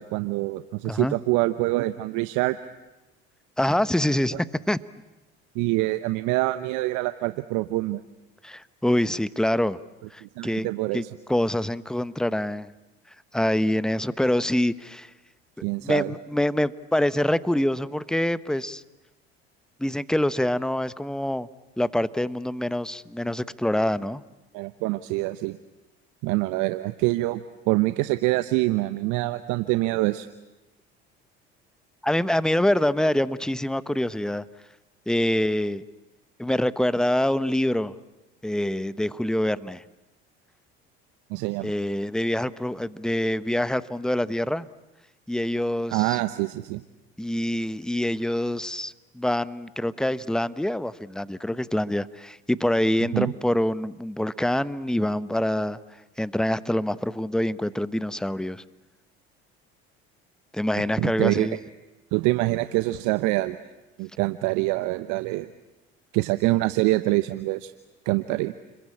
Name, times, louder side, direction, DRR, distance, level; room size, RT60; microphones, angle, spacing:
voice 1, 0.0-2.6 5.5-8.0 10.2-11.1 15.6-16.1 24.5-25.6 26.2-27.4 27.7-30.3 41.3-41.7 45.9-46.8 53.1-53.3 60.8-61.5 62.1-63.6 64.0-65.5 66.1-67.7 68.0-68.5, right 19 dB, 65° right, 12 dB, 1.0 m, -25 dB
voice 2, 0.8-1.2 3.6-4.8 8.4-9.8 10.1-10.7 10.9-12.7 13.3-15.1 15.8-18.8 19.8-21.5 21.8-24.2 32.0-34.4 35.1-35.8 36.4-37.9 38.4-39.8 41.6-44.7 45.3-46.2 47.2-55.8 56.2-58.6 60.5-61.6, left 1 dB, ahead, 15 dB, 1.1 m, -25 dB
30.0 x 22.5 x 8.7 m, 1.0 s
hypercardioid pair, 65°, 32 cm